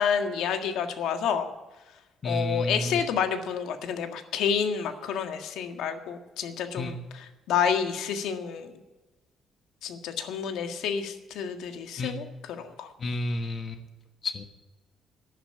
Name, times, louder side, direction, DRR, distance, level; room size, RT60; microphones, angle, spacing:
voice 1, 0.0-1.5 2.2-8.7 9.8-12.9, left 7 dB, 80° left, 7 dB, 1.7 m, -29 dB
voice 2, 2.2-3.0 6.8-7.0 12.0-12.2 13.0-13.8 14.2-14.4, left 1 dB, 35° left, 8 dB, 1.3 m, -31 dB
11.5 x 10.5 x 8.5 m, 1.2 s
cardioid pair, 135°, 0 cm